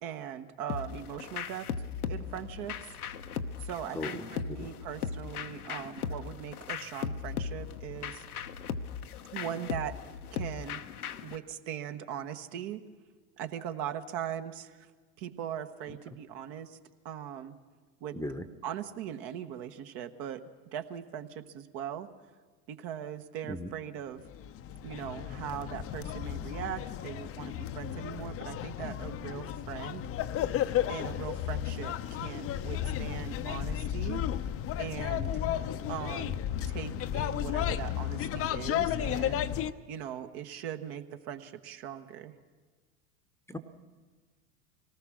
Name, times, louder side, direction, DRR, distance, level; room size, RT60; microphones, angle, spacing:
voice 1, 0.0-1.7 2.0-2.8 3.6-8.2 9.3-10.0 10.3-10.8 11.2-12.8 13.4-14.9 15.2-16.8 17.0-17.5 18.0-18.2 18.6-20.4 20.7-22.1 22.7-24.2 24.8-30.1 30.9-34.2 34.8-35.4 35.9-36.4 36.7-39.5 39.9-42.3, right 10 dB, 50° right, 8 dB, 1.3 m, -40 dB
sound 1, 0.7-11.4, left 7 dB, 85° left, 1.0 m, -38 dB
voice 2, 4.0-4.7 15.9-16.0 18.1-18.4 23.4-23.7 43.5-43.6, left 1 dB, 5° left, 9 dB, 1.0 m, -38 dB
sound 2, 24.3-39.7, left 11 dB, 30° left, 0.7 m, -33 dB
24.5 x 18.5 x 6.3 m, 1.4 s
hypercardioid pair, 85°, 43 cm